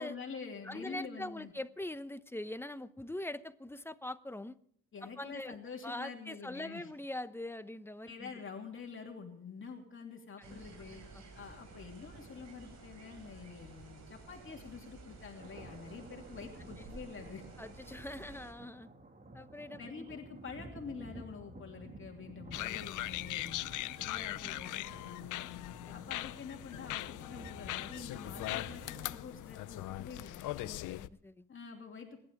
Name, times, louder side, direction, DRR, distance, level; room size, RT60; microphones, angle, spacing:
voice 1, 0.0-1.5 4.9-6.9 8.1-11.0 11.4-17.4 19.8-25.5 25.9-30.4 31.5-32.2, left 5 dB, 40° left, 2.9 m, -47 dB
voice 2, 0.6-4.6 5.0-5.6 5.8-8.4 10.4-10.6 11.1-11.2 17.6-18.9 19.3-20.0 22.5-22.8 25.9-26.1 30.6-31.5, left 1 dB, 10° left, 1.0 m, -43 dB
Bang thunder, 10.4-18.5, right 3 dB, 65° right, 5.9 m, -53 dB
sound 1, 15.4-29.2, right 2 dB, 30° right, 2.2 m, -52 dB
sound 2, 22.5-31.1, left 16 dB, 85° left, 0.7 m, -40 dB
26.5 x 11.5 x 3.6 m
cardioid pair, 90°, 30 cm